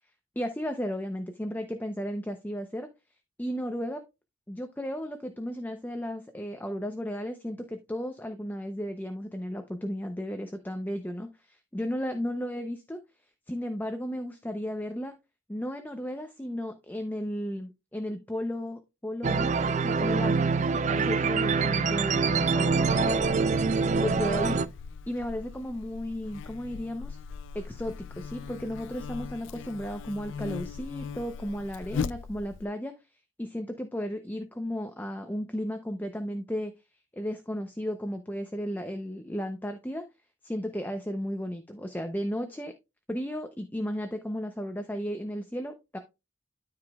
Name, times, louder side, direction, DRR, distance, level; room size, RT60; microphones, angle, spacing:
voice 1, 0.4-2.9 3.4-4.0 4.5-13.0 13.5-15.1 15.5-23.3 24.0-24.7 25.1-27.2 27.5-32.9 33.4-36.7 37.1-40.1 40.4-42.7 43.1-46.0, equal, 10° left, 6 dB, 0.6 m, -34 dB
sound 1, 19.2-24.7, right 4 dB, 35° right, 0.4 m, -25 dB
Buzz, 22.7-32.7, left 6 dB, 70° left, 0.4 m, -39 dB
13.0 x 4.9 x 2.3 m, 0.25 s
head